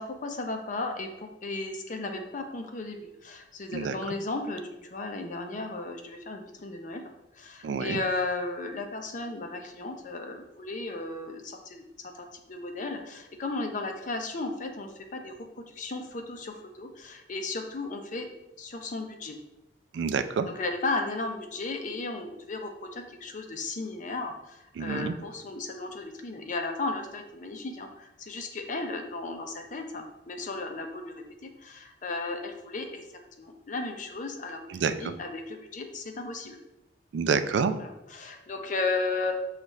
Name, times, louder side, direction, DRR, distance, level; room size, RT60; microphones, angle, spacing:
voice 1, 0.0-7.0 7.3-15.4 15.7-18.3 18.6-19.4 20.4-33.0 33.4-36.6 37.8-39.3, left 3 dB, 45° left, 4 dB, 0.6 m, -35 dB
voice 2, 7.6-8.0 19.9-20.5 24.8-25.2 34.7-35.1 37.1-37.7, right 5 dB, 85° right, 10 dB, 0.3 m, -28 dB
6.6 x 2.4 x 3.1 m, 0.91 s
head